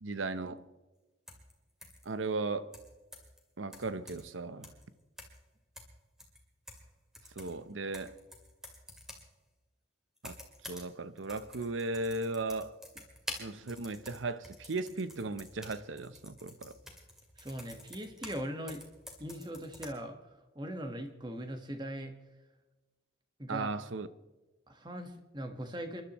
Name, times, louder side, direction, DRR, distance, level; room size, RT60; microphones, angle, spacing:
voice 1, 0.0-0.6 2.0-2.7 3.6-4.7 7.4-8.1 10.2-10.4 10.7-12.8 13.4-16.8 23.5-24.1, right 3 dB, 85° right, 0.8 m, -36 dB
sound 1, 1.3-1.5 1.8-2.0 2.7-3.4 3.7-4.4 4.6-4.8 5.2-5.4 5.8-6.9 7.1-9.3 10.2-10.9 11.2-18.4 18.7-19.9, left 1 dB, 5° right, 2.3 m, -49 dB
voice 2, 17.4-18.8 19.2-20.2 20.5-22.1 23.4-23.7 24.7-26.0, equal, 25° right, 1.4 m, -40 dB
29.0 x 11.5 x 3.0 m
head